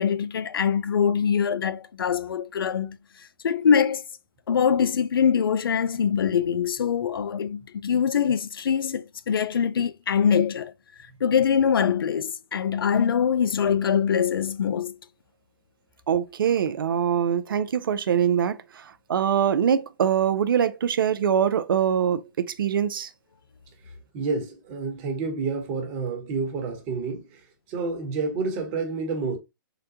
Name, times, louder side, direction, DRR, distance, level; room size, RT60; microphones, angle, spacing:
voice 1, 0.0-3.0 3.4-4.0 4.5-10.7 11.2-14.9, left 7 dB, 80° left, 0.4 m, -23 dB
voice 2, 16.1-23.1, right 8 dB, 70° right, 0.4 m, -23 dB
voice 3, 24.1-27.4 27.7-29.4, right 4 dB, 35° right, 1.1 m, -29 dB
3.8 x 2.1 x 2.7 m
hypercardioid pair, 135°, 12 cm